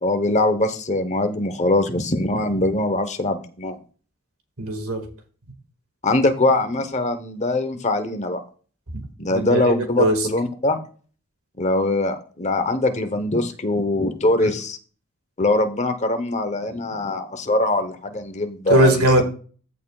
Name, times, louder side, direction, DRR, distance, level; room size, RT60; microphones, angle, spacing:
voice 1, 0.0-3.8 6.0-8.4 9.2-10.8 11.6-14.8 15.4-19.1, left 2 dB, 30° left, 1.0 m, -22 dB
voice 2, 4.6-5.1 8.9-9.0 9.3-10.3 18.7-19.2, right 1 dB, 90° right, 1.9 m, -19 dB
14.5 x 6.6 x 2.4 m
head